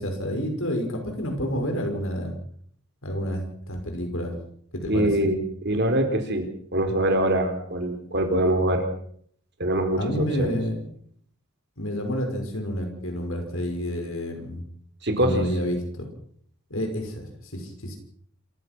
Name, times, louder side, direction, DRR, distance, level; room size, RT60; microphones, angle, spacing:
voice 1, 0.0-2.3 3.0-4.3 4.7-5.3 10.0-10.8 11.8-14.6 15.2-16.1 16.7-18.0, equal, 75° left, 4 dB, 5.8 m, -29 dB
voice 2, 4.9-8.8 9.6-10.5 15.0-15.5, right 1 dB, 55° right, 6 dB, 4.0 m, -24 dB
28.0 x 15.5 x 6.1 m, 0.63 s
head